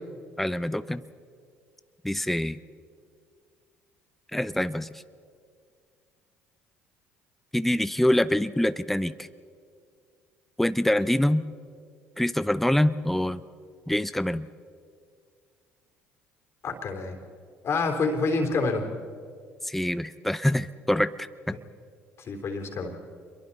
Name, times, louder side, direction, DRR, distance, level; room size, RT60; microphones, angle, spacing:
voice 1, 0.4-1.0 2.0-2.6 4.3-5.0 7.5-9.3 10.6-11.4 12.2-13.4 13.9-14.5 19.6-21.6, left 1 dB, 5° left, 14 dB, 0.7 m, -25 dB
voice 2, 16.6-17.1 17.6-18.9 22.3-22.9, left 3 dB, 50° left, 3 dB, 3.6 m, -27 dB
27.5 x 22.5 x 4.2 m, 2.1 s
hypercardioid pair, 60°, 6 cm